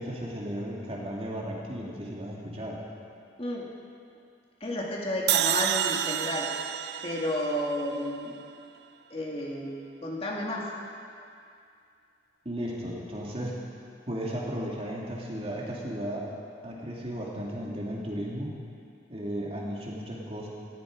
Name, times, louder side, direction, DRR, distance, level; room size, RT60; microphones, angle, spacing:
voice 1, 0.0-2.8 12.4-13.6 14.1-16.3 16.6-18.5 19.1-20.5, equal, 35° right, -3 dB, 2.6 m, -35 dB
voice 2, 3.4-3.7 4.6-6.5 7.0-8.4 9.1-9.7 10.0-10.7, left 1 dB, 30° left, -2 dB, 2.1 m, -31 dB
sound 1, 5.3-8.5, right 11 dB, 65° right, 0.5 m, -29 dB
18.5 x 15.0 x 5.0 m, 2.4 s
head